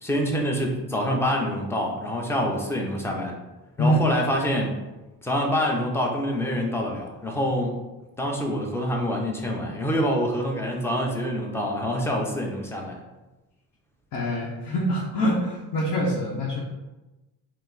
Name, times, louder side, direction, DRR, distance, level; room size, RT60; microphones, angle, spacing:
voice 1, 0.0-3.4 3.8-4.8 5.2-7.8 8.2-13.0, equal, 5° left, 0 dB, 0.7 m, -26 dB
voice 2, 14.1-16.6, equal, 55° left, -4 dB, 0.9 m, -24 dB
4.7 x 2.1 x 4.0 m, 1.1 s
cardioid pair, 95°, 42 cm